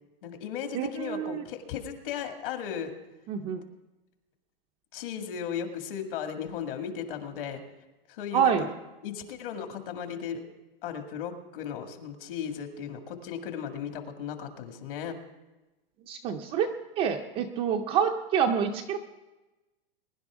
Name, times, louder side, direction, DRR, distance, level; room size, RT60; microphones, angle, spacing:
voice 1, 0.2-2.9 4.9-7.6 8.1-8.7 9.0-10.4 10.8-15.2, left 8 dB, 60° left, 5 dB, 2.1 m, -36 dB
voice 2, 0.7-1.5 3.3-3.6 8.3-8.7 16.1-16.7 17.0-19.0, right 8 dB, 20° right, 4 dB, 0.4 m, -27 dB
22.0 x 11.0 x 3.6 m, 1.1 s
supercardioid pair, 155°, 31 cm